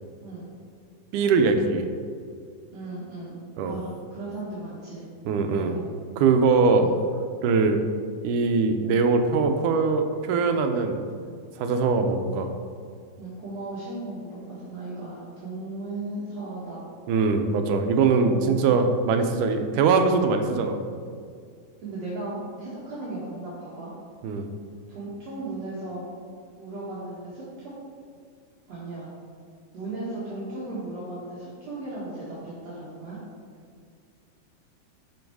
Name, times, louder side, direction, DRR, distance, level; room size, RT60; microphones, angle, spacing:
voice 1, 1.1-1.9 3.6-3.8 5.3-5.8 6.2-6.9 7.4-7.8 8.2-11.0 11.6-12.5 17.1-20.8 24.2-24.5, right 4 dB, 85° right, 6 dB, 2.3 m, -22 dB
voice 2, 2.7-3.4 3.7-5.1 5.6-5.9 6.8-7.0 13.2-16.8 18.2-18.6 21.8-23.9 24.9-26.0 26.6-27.7 28.7-29.1 29.7-33.2, right 2 dB, 60° right, -9 dB, 2.9 m, -36 dB
12.5 x 5.6 x 4.7 m, 2.2 s
omnidirectional pair, 3.5 m